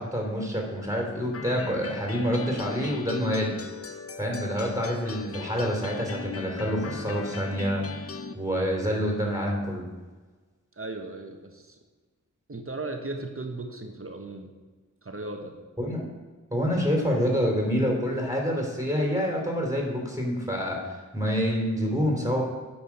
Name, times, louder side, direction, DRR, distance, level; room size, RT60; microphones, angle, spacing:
voice 1, 0.0-3.6 4.2-9.9 15.8-16.0 16.5-22.4, equal, 10° right, -1 dB, 3.1 m, -27 dB
sound 1, 1.3-8.3, left 4 dB, 45° left, 0.6 m, -38 dB
voice 2, 10.8-11.8 12.5-14.5 15.0-15.5, right 2 dB, 45° right, 4 dB, 1.2 m, -36 dB
8.5 x 6.0 x 6.0 m, 1.3 s
wide cardioid pair, 60°, 32 cm